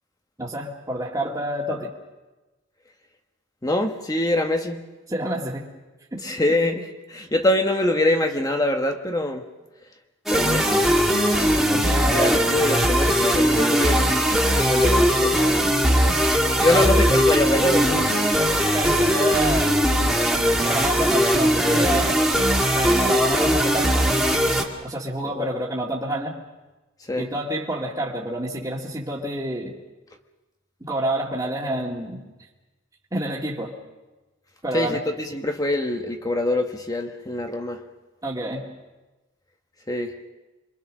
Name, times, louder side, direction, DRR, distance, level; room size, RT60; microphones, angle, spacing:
voice 1, 0.4-1.9 5.1-5.7 6.1-6.2 11.7-12.4 16.7-17.1 18.7-19.8 20.6-22.2 22.7-24.1 24.8-26.4 27.2-29.7 30.8-32.2 33.1-33.7 34.6-35.0 38.2-38.7, right 1 dB, 15° right, -5 dB, 2.0 m, -28 dB
voice 2, 3.6-4.8 6.1-9.4 10.3-10.9 12.1-16.2 16.6-18.1 25.2-25.5 27.1-27.3 34.7-37.8 39.9-40.1, left 1 dB, 20° left, 4 dB, 1.2 m, -24 dB
sound 1, 10.3-24.6, equal, ahead, 2.0 m, -20 dB
27.0 x 23.0 x 6.3 m, 1.1 s
head